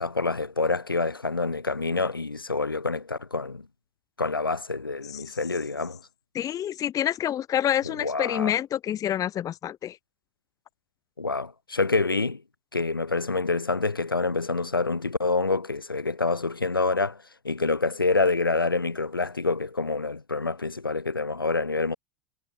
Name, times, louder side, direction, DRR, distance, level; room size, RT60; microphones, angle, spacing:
voice 1, 0.0-3.7 4.2-6.0 7.9-8.5 11.2-12.4 12.7-17.2 17.4-22.0, left 3 dB, 90° left, 2.0 m, -27 dB
voice 2, 6.3-10.0, left 11 dB, 30° left, 0.8 m, -27 dB
figure-of-eight pair, 80°, 11 cm